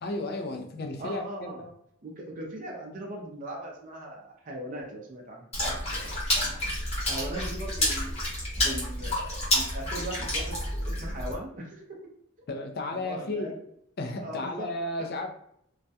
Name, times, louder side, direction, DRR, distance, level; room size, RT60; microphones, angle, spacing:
voice 1, 0.0-1.5 12.5-13.5 14.0-15.3, left 2 dB, 50° left, 4 dB, 0.4 m, -33 dB
voice 2, 1.0-1.7 2.0-8.2 8.6-11.8 12.9-13.6 14.2-14.7, right 1 dB, 40° right, -2 dB, 0.5 m, -39 dB
Water / Splash splatter, 5.5-11.3, left 1 dB, 30° left, 0.8 m, -29 dB
2.3 x 2.1 x 2.7 m, 0.71 s
head